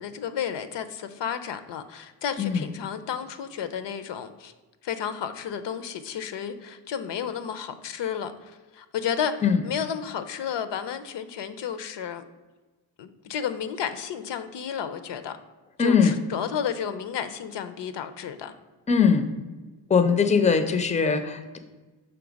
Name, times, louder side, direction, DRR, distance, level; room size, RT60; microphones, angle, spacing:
voice 1, 0.0-4.5 4.8-12.3 13.0-15.4 15.8-18.5, left 8 dB, 70° left, 11 dB, 0.5 m, -32 dB
voice 2, 15.8-16.2 18.9-19.3 19.9-21.6, left 6 dB, 15° left, 9 dB, 0.4 m, -21 dB
5.9 x 3.2 x 5.1 m, 1.2 s
wide cardioid pair, 110°, 44 cm